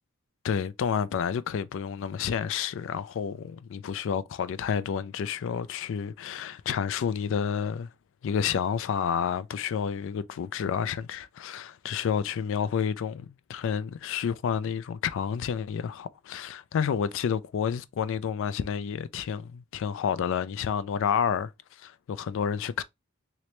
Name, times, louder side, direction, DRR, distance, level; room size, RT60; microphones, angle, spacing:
voice 1, 0.4-7.9 8.2-22.8, left 7 dB, 65° left, 0.3 m, -30 dB
3.0 x 3.0 x 3.1 m
head